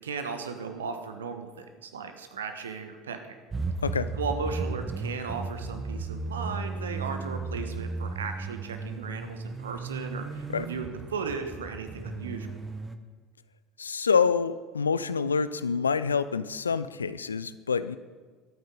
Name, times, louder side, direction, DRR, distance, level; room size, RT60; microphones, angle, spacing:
voice 1, 0.0-3.4 4.1-12.6, right 5 dB, 75° right, 8 dB, 1.2 m, -36 dB
sound 1, 3.5-13.0, right 3 dB, 25° right, 1.0 m, -35 dB
voice 2, 13.8-18.0, left 5 dB, 80° left, 14 dB, 0.4 m, -27 dB
22.5 x 9.1 x 3.9 m, 1.5 s
figure-of-eight pair, 65°, 0 cm